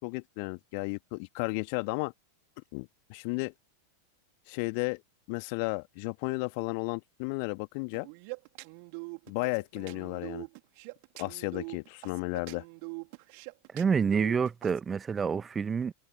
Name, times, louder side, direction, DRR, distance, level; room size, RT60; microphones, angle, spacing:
voice 1, 0.0-2.1 2.7-3.5 4.5-5.0 5.3-8.1 9.3-10.4 11.2-12.6, left 34 dB, 45° left, 2.4 m, -33 dB
sound 1, 7.9-14.8, right 36 dB, 45° right, 2.4 m, -43 dB
voice 2, 13.7-15.9, right 6 dB, 20° right, 1.0 m, -28 dB
figure-of-eight pair, 90°, 0 cm